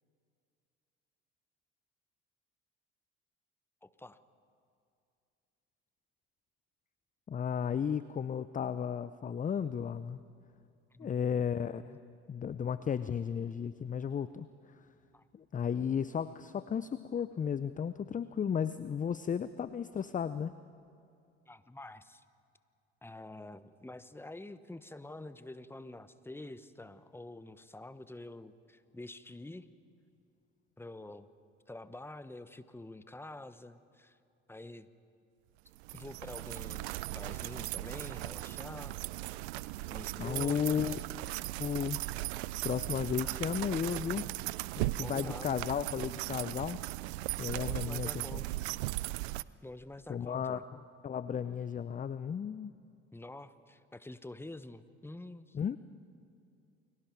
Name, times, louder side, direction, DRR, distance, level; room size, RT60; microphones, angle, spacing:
voice 1, 3.8-4.2 10.9-11.1 15.1-15.3 21.5-22.2 23.0-29.7 30.8-31.3 31.7-34.2 34.5-34.9 35.9-39.3 39.9-40.8 45.0-45.6 47.6-48.6 49.6-50.6 53.1-55.6, left 2 dB, 5° left, 13 dB, 1.0 m, -47 dB
voice 2, 7.3-10.2 11.0-12.0 12.3-14.5 15.3-20.5 40.2-41.0 41.6-42.0 42.6-44.3 44.8-46.8 47.4-48.4 50.1-50.6 51.0-52.7 55.5-55.8, left 7 dB, 25° left, 14 dB, 0.6 m, -34 dB
sound 1, 35.8-49.4, right 19 dB, 75° right, 0.5 m, -38 dB
29.5 x 22.0 x 4.6 m, 2.4 s
hypercardioid pair, 55°, 33 cm